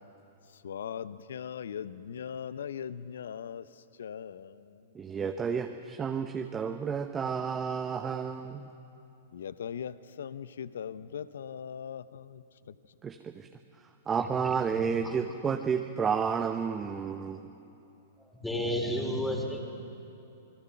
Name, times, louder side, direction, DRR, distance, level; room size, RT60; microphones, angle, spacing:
voice 1, 0.6-3.6 4.0-4.5 9.3-12.4, left 8 dB, 75° left, 15 dB, 0.8 m, -39 dB
voice 2, 4.9-8.7 13.0-13.3 14.1-17.5, right 6 dB, 20° right, 5 dB, 1.0 m, -31 dB
voice 3, 18.2-19.6, equal, 5° left, 0 dB, 3.8 m, -32 dB
28.0 x 21.0 x 5.8 m, 2.8 s
hypercardioid pair, 120°, 0 cm